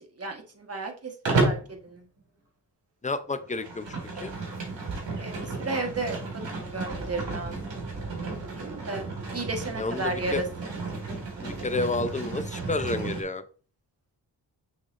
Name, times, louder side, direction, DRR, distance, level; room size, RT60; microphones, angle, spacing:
voice 1, 0.0-2.0 5.2-7.5 8.2-8.3 8.5-10.7, right 3 dB, 35° right, 4 dB, 1.6 m, -34 dB
Livestock farm animals working animals, 1.3-1.7 3.4-13.2, right 3 dB, 75° right, 2.2 m, -32 dB
voice 2, 3.0-3.9 4.2-4.3 9.8-10.4 10.9-11.1 11.4-13.4, left 3 dB, 15° left, 10 dB, 0.7 m, -30 dB
6.1 x 5.8 x 2.6 m, 0.39 s
cardioid pair, 65°, 44 cm